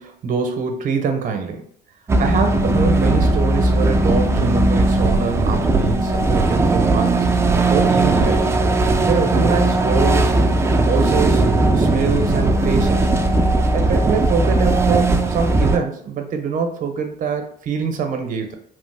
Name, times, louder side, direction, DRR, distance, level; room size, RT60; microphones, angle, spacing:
voice 1, 0.0-1.6 2.2-8.5 9.1-10.4 10.8-13.1 13.7-18.6, right 5 dB, 50° right, 5 dB, 0.7 m, -24 dB
sound 1, 2.1-15.8, right 2 dB, 15° right, 0.3 m, -17 dB
3.1 x 2.0 x 3.2 m, 0.64 s
cardioid pair, 110°, 17 cm